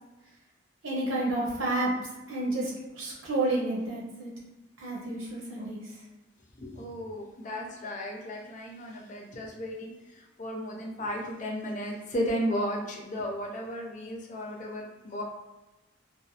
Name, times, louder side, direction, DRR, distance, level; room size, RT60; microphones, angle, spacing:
voice 1, 0.8-2.7 3.0-4.3 4.8-5.8, right 2 dB, 90° right, -4 dB, 0.8 m, -30 dB
voice 2, 6.6-15.2, equal, 40° left, -1 dB, 0.4 m, -34 dB
2.5 x 2.0 x 2.6 m, 1.1 s
head